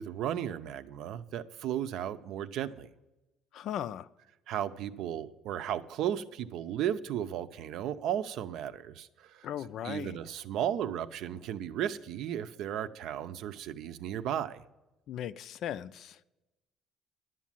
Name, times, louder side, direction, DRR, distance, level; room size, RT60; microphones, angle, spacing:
voice 1, 0.0-2.9 4.5-9.5 9.8-14.6, right 10 dB, 65° right, 0.6 m, -35 dB
voice 2, 3.5-4.1 9.4-10.2 15.1-16.2, left 10 dB, 55° left, 0.4 m, -37 dB
11.0 x 7.3 x 7.4 m
cardioid pair, 170°, 0 cm